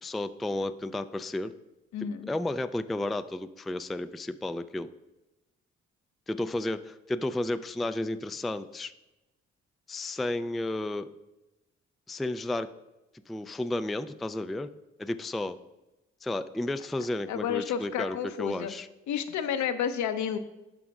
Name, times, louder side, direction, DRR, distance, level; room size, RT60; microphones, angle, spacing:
voice 1, 0.0-1.5 2.2-4.9 6.3-8.9 9.9-11.1 12.1-12.7 13.3-14.7 15.0-15.6 16.2-18.9, left 1 dB, ahead, 11 dB, 0.3 m, -32 dB
voice 2, 1.9-2.3 17.3-18.7 19.1-20.4, left 8 dB, 65° left, 9 dB, 0.7 m, -31 dB
12.5 x 5.0 x 2.4 m, 0.98 s
hypercardioid pair, 50°, 31 cm